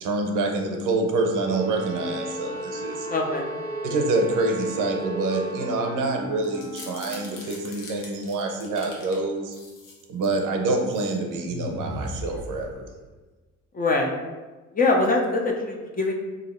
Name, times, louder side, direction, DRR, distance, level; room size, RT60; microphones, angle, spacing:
voice 1, 0.0-3.1 3.8-9.5 10.1-12.9, right 2 dB, 80° right, 2 dB, 0.7 m, -26 dB
sound 1, 1.3-6.0, equal, 20° right, 0.6 m, -35 dB
Wind instrument woodwind instrument, 1.9-7.6, left 1 dB, 55° left, 1.1 m, -40 dB
voice 2, 3.1-3.5 13.7-14.1 14.7-16.1, left 3 dB, 30° left, 1 dB, 0.5 m, -23 dB
sound 2, 6.4-9.2 9.5-10.4 10.8-11.1 11.5-13.1, left 2 dB, 85° left, 0.9 m, -38 dB
2.8 x 2.7 x 4.2 m, 1.3 s
cardioid pair, 125°, 31 cm